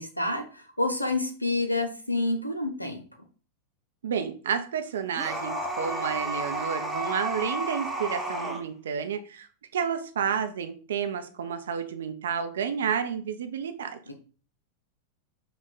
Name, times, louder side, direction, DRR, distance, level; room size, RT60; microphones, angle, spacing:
voice 1, 0.0-3.0, left 2 dB, 85° left, 5 dB, 0.8 m, -28 dB
voice 2, 4.0-9.5 9.7-14.0, right 7 dB, 65° right, 8 dB, 0.6 m, -30 dB
sound 1, 5.1-8.6, right 1 dB, 5° right, 1.0 m, -32 dB
5.5 x 2.4 x 4.0 m, 0.39 s
figure-of-eight pair, 90°, 0 cm